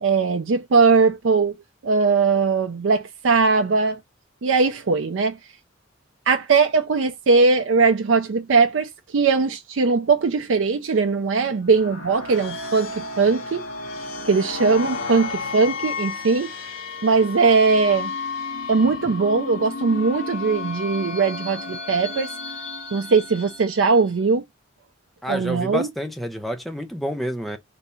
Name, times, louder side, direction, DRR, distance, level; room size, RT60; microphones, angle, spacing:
voice 1, 0.0-1.5 1.8-4.0 4.4-5.4 6.3-13.6 14.3-16.5 17.0-18.1 18.7-22.3 22.9-24.4 25.3-25.9, right 4 dB, 65° right, 0.5 m, -20 dB
sound 1, 11.6-24.1, left 4 dB, 70° left, 1.5 m, -32 dB
voice 2, 25.2-27.6, equal, ahead, 0.6 m, -28 dB
3.5 x 2.8 x 4.2 m
head